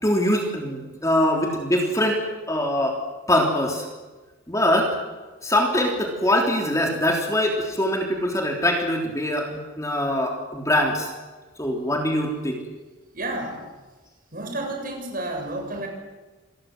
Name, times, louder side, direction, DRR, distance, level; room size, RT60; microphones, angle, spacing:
voice 1, 0.0-3.0 3.3-3.9 4.5-5.0 5.4-11.1 11.6-12.6, left 1 dB, 15° left, 2 dB, 3.4 m, -23 dB
voice 2, 13.1-13.7 14.3-15.9, right 2 dB, 45° right, 3 dB, 7.0 m, -31 dB
27.0 x 21.0 x 7.8 m, 1.2 s
head